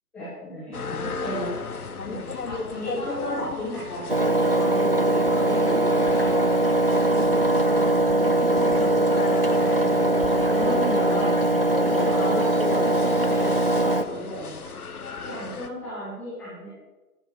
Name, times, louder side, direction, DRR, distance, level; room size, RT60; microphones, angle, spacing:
voice 1, 0.1-1.6 2.0-6.6 6.9-10.1 10.5-11.4 11.8-14.7 15.2-16.7, equal, 5° left, -12 dB, 1.6 m, -34 dB
sound 1, 0.7-15.7, left 4 dB, 65° left, 1.4 m, -36 dB
Engine, 4.1-14.0, right 1 dB, 40° right, 0.4 m, -21 dB
11.0 x 9.7 x 5.1 m, 1.1 s
hypercardioid pair, 165°, 47 cm